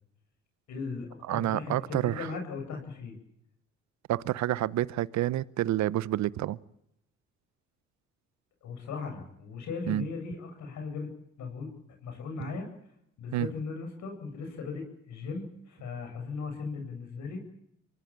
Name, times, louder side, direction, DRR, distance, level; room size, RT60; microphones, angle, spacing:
voice 1, 0.7-3.1 8.6-11.1 11.4-12.7 13.2-17.4, left 4 dB, 70° left, 4 dB, 7.9 m, -38 dB
voice 2, 1.3-2.3 4.1-6.6 9.9-10.0 13.3-13.5, right 14 dB, 70° right, 20 dB, 0.9 m, -28 dB
24.5 x 19.0 x 9.0 m, 0.79 s
supercardioid pair, 75°, 29 cm